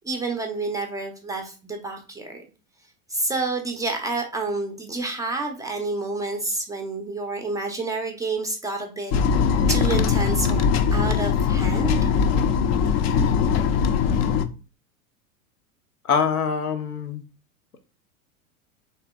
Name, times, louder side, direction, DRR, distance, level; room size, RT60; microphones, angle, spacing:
voice 1, 0.0-2.4 3.1-9.1 9.7-12.0, right 3 dB, 10° right, 3 dB, 0.4 m, -29 dB
sound 1, 9.1-14.4, left 6 dB, 45° left, 0.5 m, -21 dB
voice 2, 16.0-17.2, left 6 dB, 85° left, 7 dB, 0.7 m, -24 dB
3.4 x 3.0 x 3.4 m, 0.34 s
figure-of-eight pair, 90°, 43 cm